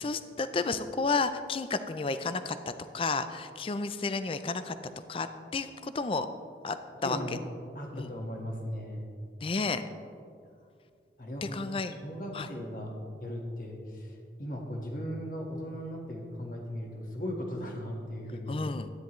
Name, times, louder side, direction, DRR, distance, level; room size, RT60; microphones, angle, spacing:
voice 1, 0.0-2.6 2.9-4.7 5.1-5.3 5.5-6.3 6.6-7.4 7.9-8.1 9.4-9.8 11.4-12.0 12.3-12.5 18.5-18.9, left 4 dB, 30° left, 11 dB, 0.4 m, -31 dB
voice 2, 7.0-7.4 7.7-9.1 11.2-12.9 13.2-18.6, equal, 50° left, 0 dB, 1.5 m, -37 dB
13.0 x 10.0 x 3.1 m, 2.3 s
head